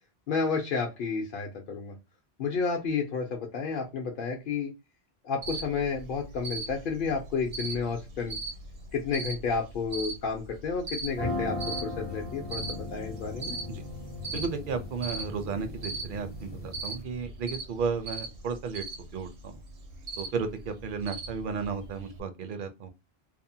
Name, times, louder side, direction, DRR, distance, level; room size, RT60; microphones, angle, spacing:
voice 1, 0.3-1.9 2.4-4.7 5.2-8.4 8.9-11.6 11.8-13.6, left 5 dB, 60° left, 0.7 m, -31 dB
Cricket, 5.4-22.2, right 3 dB, 80° right, 1.0 m, -40 dB
Piano Chord F, 11.1-17.0, left 2 dB, 15° left, 0.4 m, -38 dB
voice 2, 14.3-18.8 19.1-19.6 20.2-22.9, right 5 dB, 60° right, 0.6 m, -33 dB
2.6 x 2.1 x 2.6 m
omnidirectional pair, 1.1 m